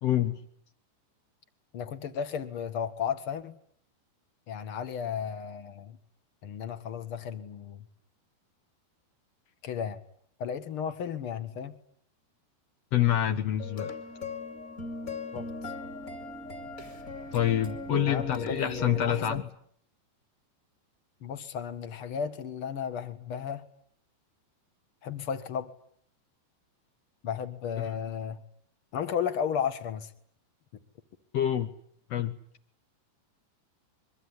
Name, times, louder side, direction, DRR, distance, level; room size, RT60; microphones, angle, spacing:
voice 1, 0.0-0.4 12.9-13.9 17.3-19.4 27.8-27.9 31.3-31.7 32.1-32.4, left 11 dB, 85° left, 7 dB, 1.4 m, -27 dB
voice 2, 1.7-3.6 4.5-6.0 6.4-7.8 9.6-10.0 10.4-11.8 15.3-15.7 18.1-19.4 21.2-23.6 25.0-25.7 27.2-28.4 28.9-30.1, left 7 dB, 55° left, 10 dB, 1.5 m, -34 dB
sound 1, 13.6-19.4, left 1 dB, 25° left, 2.3 m, -38 dB
24.5 x 23.5 x 9.8 m, 0.64 s
omnidirectional pair, 5.1 m